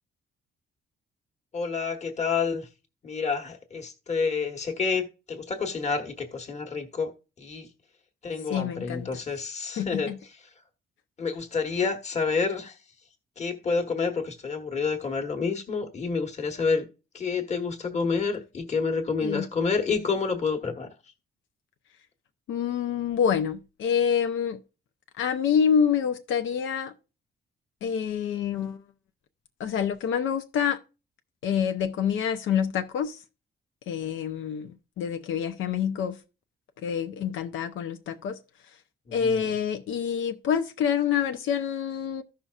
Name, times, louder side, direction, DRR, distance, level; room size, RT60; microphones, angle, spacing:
voice 1, 1.5-2.7 3.0-7.1 7.4-7.7 8.2-10.1 11.2-12.8 13.4-16.9 17.1-20.9 39.1-39.4, left 5 dB, 35° left, 1.2 m, -28 dB
voice 2, 8.5-9.1 9.8-10.2 19.2-19.5 22.5-24.6 25.2-26.9 27.8-28.8 29.6-30.8 31.4-33.2 33.9-36.2 36.8-38.4 38.6-38.8 39.1-42.2, left 8 dB, 85° left, 0.6 m, -27 dB
14.5 x 5.7 x 2.4 m
cardioid pair, 150°, 20 cm